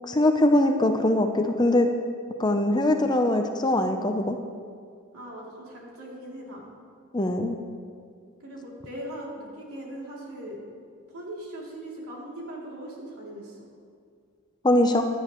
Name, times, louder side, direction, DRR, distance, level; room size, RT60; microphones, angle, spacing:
voice 1, 0.1-1.9 2.4-4.4 7.1-7.6 14.6-15.0, left 1 dB, 20° left, 5 dB, 0.5 m, -22 dB
voice 2, 5.1-6.6 8.4-10.6 11.1-13.7, right 1 dB, 80° right, -4 dB, 2.8 m, -39 dB
16.0 x 11.0 x 3.0 m, 2.2 s
head